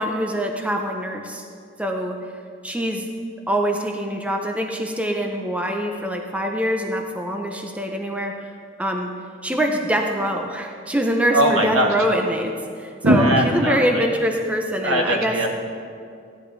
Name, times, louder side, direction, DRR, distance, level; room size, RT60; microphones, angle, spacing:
voice 1, 0.0-1.5 1.8-2.2 2.6-3.1 3.5-8.5 8.8-9.1 9.4-15.4, equal, 5° right, 2 dB, 0.6 m, -24 dB
voice 2, 11.3-11.9 13.0-14.1 14.8-15.5, right 1 dB, 80° right, 0 dB, 1.6 m, -19 dB
15.0 x 11.0 x 3.4 m, 2.3 s
head